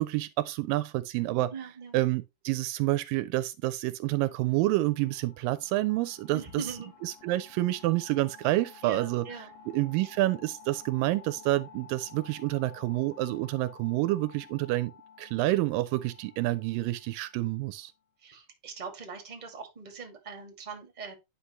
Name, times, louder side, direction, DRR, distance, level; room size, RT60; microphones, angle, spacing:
voice 1, 0.0-1.5 1.9-6.8 7.0-9.3 9.7-14.9 15.2-17.9, right 17 dB, 80° right, 2.2 m, -28 dB
voice 2, 1.5-1.9 6.3-6.9 8.8-9.5 18.2-21.1, right 5 dB, 15° right, 1.5 m, -41 dB
sound 1, 4.3-17.8, left 6 dB, 60° left, 1.6 m, -53 dB
9.8 x 5.8 x 3.0 m
omnidirectional pair, 4.1 m